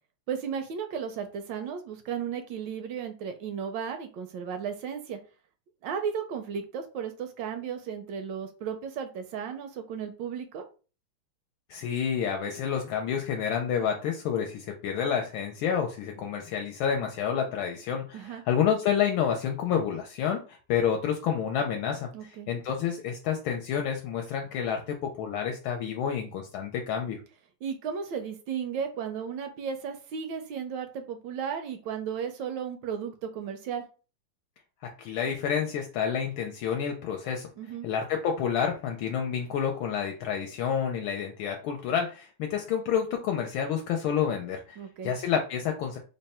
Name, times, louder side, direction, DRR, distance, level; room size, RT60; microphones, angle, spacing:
voice 1, 0.3-5.2 5.8-10.6 18.1-18.4 22.1-22.5 27.6-33.8 37.6-37.9 44.8-45.1, right 7 dB, 75° right, 7 dB, 1.0 m, -34 dB
voice 2, 11.7-27.2 34.8-37.5 37.8-44.8 45.0-46.0, left 8 dB, 80° left, 3 dB, 1.3 m, -29 dB
3.6 x 2.1 x 4.1 m, 0.35 s
omnidirectional pair, 2.3 m